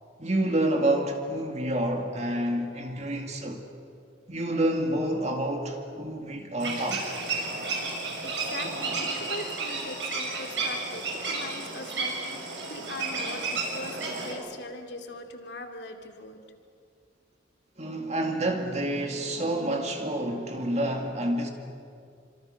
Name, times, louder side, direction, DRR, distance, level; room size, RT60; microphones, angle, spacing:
voice 1, 0.2-3.6 4.3-7.0 13.7-14.0 17.8-21.5, right 1 dB, 35° right, 2.3 m, -28 dB
sound 1, 6.6-14.3, right 3 dB, 75° right, 6.4 m, -32 dB
voice 2, 8.2-16.4, left 2 dB, 65° left, 2.7 m, -41 dB
28.0 x 26.0 x 6.6 m
head